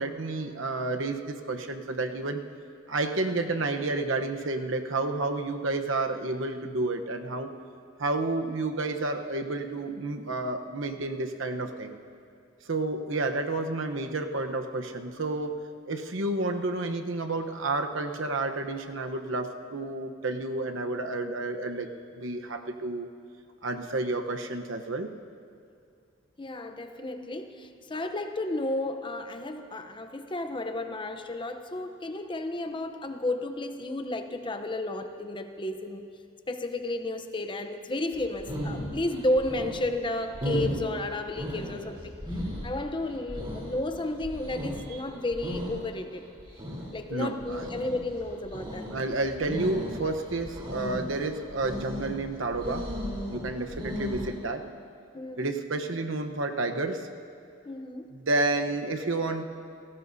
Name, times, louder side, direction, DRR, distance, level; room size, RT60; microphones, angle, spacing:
voice 1, 0.0-2.4 2.9-7.5 8.0-12.0 12.7-15.6 15.9-23.1 23.6-25.1 47.1-47.7 48.9-52.9 53.3-54.7 55.4-57.1 58.1-59.5, right 2 dB, 75° right, 5 dB, 1.0 m, -30 dB
voice 2, 26.4-36.1 36.5-42.1 42.6-46.3 46.9-48.9 55.1-55.5 57.6-58.1, left 2 dB, 25° left, 7 dB, 0.8 m, -32 dB
sound 1, 38.1-54.3, equal, 30° right, 3.5 m, -36 dB
29.5 x 17.5 x 2.7 m, 2.3 s
head